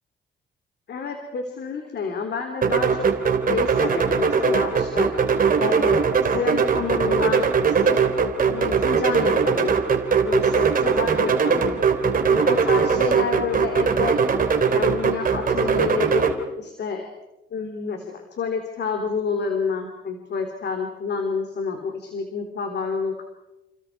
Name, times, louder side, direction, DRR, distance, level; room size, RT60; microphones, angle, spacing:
voice 1, 0.9-3.1 3.5-5.1 5.5-8.0 8.5-9.8 10.2-11.8 12.3-14.2 14.7-17.1 17.5-23.2, left 5 dB, 60° left, 4 dB, 3.5 m, -29 dB
sound 1, 2.6-16.3, right 5 dB, 45° right, 3.2 m, -21 dB
29.5 x 28.0 x 4.8 m, 0.99 s
cardioid pair, 90°, 20 cm